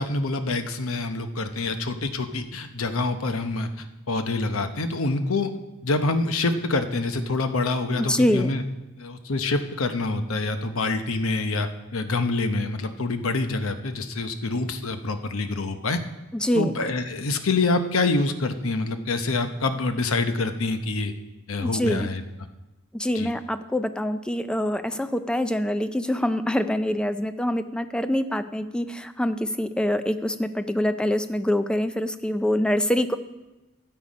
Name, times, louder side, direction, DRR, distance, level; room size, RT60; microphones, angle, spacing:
voice 1, 0.0-5.5 5.8-8.6 9.0-16.0 16.5-21.1 21.5-22.2 23.1-23.3, left 3 dB, 85° left, 8 dB, 0.9 m, -26 dB
voice 2, 8.0-8.5 16.3-16.7 21.6-22.1 22.9-33.2, left 1 dB, 5° left, 10 dB, 0.4 m, -25 dB
12.5 x 7.9 x 5.3 m, 1.0 s
head